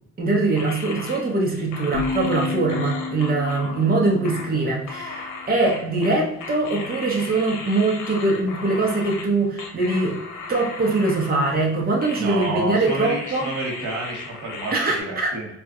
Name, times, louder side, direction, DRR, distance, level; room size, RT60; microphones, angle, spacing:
voice 1, 0.2-10.2 10.5-13.5 14.7-15.3, right 3 dB, 30° right, -2 dB, 0.9 m, -22 dB
sound 1, 0.6-9.3 9.6-11.7 12.0-12.6 12.9-15.0, left 4 dB, 80° left, 0.7 m, -36 dB
sound 2, 1.9-5.8, left 4 dB, 30° left, 0.5 m, -32 dB
voice 2, 12.2-15.5, right 2 dB, 85° right, -2 dB, 1.1 m, -30 dB
3.9 x 2.4 x 2.4 m, 0.84 s
cardioid pair, 90°, 30 cm